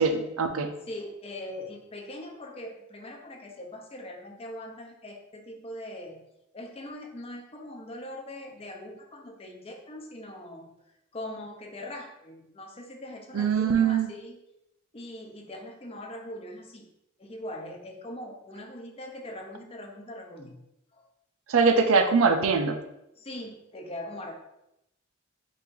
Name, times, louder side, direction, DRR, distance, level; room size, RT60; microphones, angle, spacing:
voice 1, 0.0-0.7 13.3-14.1 21.5-22.8, right 5 dB, 75° right, 7 dB, 0.5 m, -22 dB
voice 2, 0.9-6.2 6.5-10.7 11.1-14.4 14.9-16.9 17.2-20.6 20.9-21.1 23.2-24.3, left 1 dB, 30° left, 2 dB, 0.6 m, -41 dB
4.4 x 2.6 x 3.7 m, 0.84 s
head